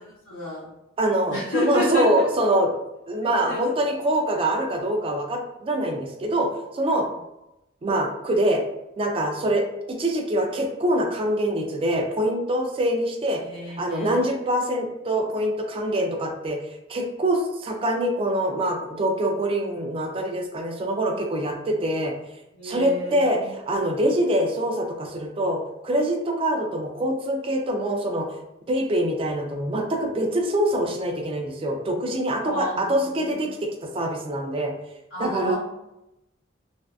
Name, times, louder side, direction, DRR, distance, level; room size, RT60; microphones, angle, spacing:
voice 1, 0.3-0.7 1.3-2.1 3.2-3.9 13.4-14.2 22.5-23.5 32.4-33.6 35.1-35.6, left 1 dB, 70° left, -11 dB, 0.8 m, -31 dB
voice 2, 1.0-2.7 3.1-7.1 7.8-8.6 9.0-13.4 13.8-16.6 16.9-22.1 22.6-28.3 28.7-34.7 35.2-35.6, right 1 dB, 30° right, 3 dB, 0.3 m, -24 dB
2.5 x 2.2 x 2.3 m, 0.93 s
head